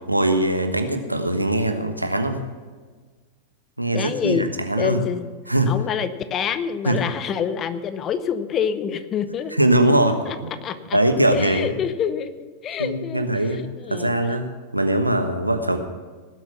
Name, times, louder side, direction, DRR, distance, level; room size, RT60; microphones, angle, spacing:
voice 1, 0.1-2.4 3.8-5.0 5.5-5.7 6.8-7.0 9.5-10.5 10.9-11.7 12.8-13.6 13.9-14.5 14.7-15.8, right 1 dB, 85° right, 7 dB, 1.2 m, -21 dB
voice 2, 3.9-4.5 4.8-5.3 5.7-9.7 10.2-10.4 10.6-11.0 11.3-14.1 15.2-15.4, left 8 dB, 30° left, 13 dB, 0.8 m, -27 dB
18.0 x 7.9 x 5.9 m, 1.4 s
figure-of-eight pair, 90°, 0 cm